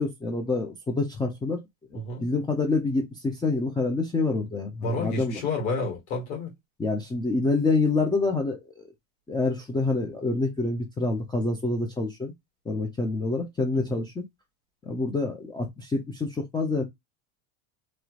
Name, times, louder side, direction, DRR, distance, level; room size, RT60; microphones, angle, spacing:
voice 1, 0.0-1.6 1.9-5.4 6.8-8.8 9.3-12.3 12.7-14.2 14.9-16.8, left 3 dB, 10° left, 0.5 m, -27 dB
voice 2, 1.9-2.3 4.8-6.5 13.9-14.0, left 3 dB, 80° left, 1.8 m, -30 dB
3.0 x 3.0 x 2.4 m
supercardioid pair, 110°, 42 cm